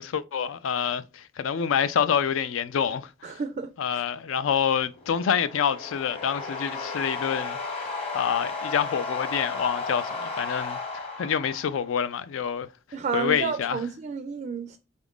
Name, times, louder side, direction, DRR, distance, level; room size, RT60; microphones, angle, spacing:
voice 1, 0.0-3.4 3.8-7.6 8.1-12.7 13.1-13.8, left 7 dB, 75° left, 0.4 m, -27 dB
voice 2, 3.2-4.0 12.9-14.8, right 5 dB, 40° right, 0.3 m, -31 dB
sound 1, 4.9-12.0, left 4 dB, 30° left, 0.9 m, -34 dB
3.9 x 2.5 x 3.5 m
head